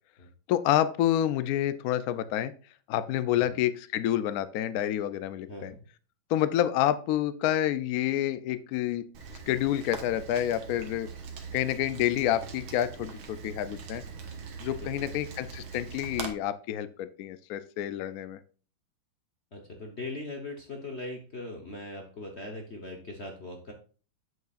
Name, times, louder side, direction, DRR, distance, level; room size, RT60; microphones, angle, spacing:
voice 1, 0.5-2.5 2.9-5.7 6.3-9.0 9.5-11.1 11.5-14.0 14.6-18.4, left 12 dB, 85° left, 13 dB, 0.8 m, -28 dB
voice 2, 5.5-5.8 14.8-15.1 19.5-23.7, left 2 dB, 40° left, 2 dB, 1.1 m, -40 dB
Rain, 9.1-16.3, right 5 dB, 80° right, 2.0 m, -42 dB
8.0 x 7.8 x 2.5 m, 0.39 s
omnidirectional pair, 2.2 m